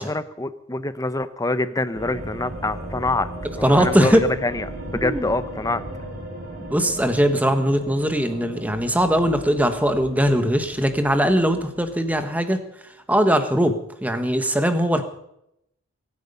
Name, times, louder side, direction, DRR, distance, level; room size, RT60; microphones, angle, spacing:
voice 1, 0.0-3.3 3.5-5.8, left 2 dB, 15° left, 13 dB, 0.7 m, -26 dB
sound 1, 1.9-12.4, right 1 dB, 45° right, 5.7 m, -37 dB
voice 2, 3.6-4.2 5.0-5.3 6.7-12.6 13.1-15.0, equal, 5° right, 8 dB, 1.3 m, -20 dB
23.0 x 9.6 x 5.5 m, 0.78 s
head